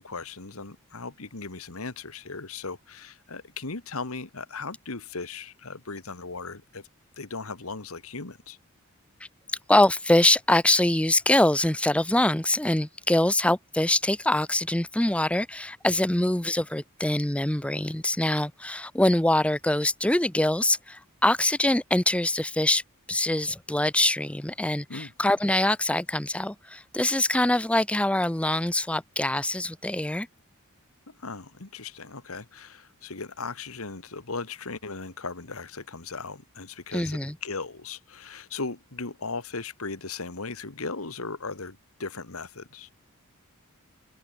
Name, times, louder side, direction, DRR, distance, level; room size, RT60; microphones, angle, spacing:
voice 1, 0.0-6.8 7.2-8.6 24.9-25.1 31.1-42.9, left 4 dB, 75° left, 1.8 m, -37 dB
voice 2, 9.7-22.8 23.1-30.3 36.9-37.3, left 1 dB, 5° left, 0.6 m, -24 dB
head